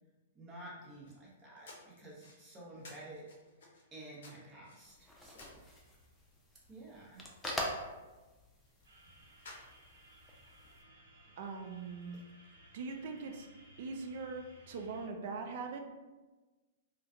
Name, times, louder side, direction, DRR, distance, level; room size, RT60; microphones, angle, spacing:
voice 1, 0.3-3.2 3.9-5.6 6.7-7.3 9.0-9.1 12.1-12.2, right 1 dB, 20° right, -5 dB, 0.9 m, -51 dB
sound 1, 0.9-10.2, left 2 dB, 65° left, 0.6 m, -58 dB
sound 2, 4.8-10.8, left 1 dB, 5° left, 0.4 m, -45 dB
sound 3, 8.8-15.1, equal, 75° right, 0.8 m, -60 dB
voice 2, 11.4-12.2 12.7-13.5 13.8-15.8, right 4 dB, 55° right, 4 dB, 0.3 m, -41 dB
2.2 x 2.2 x 2.6 m, 1.2 s
hypercardioid pair, 115°, 0 cm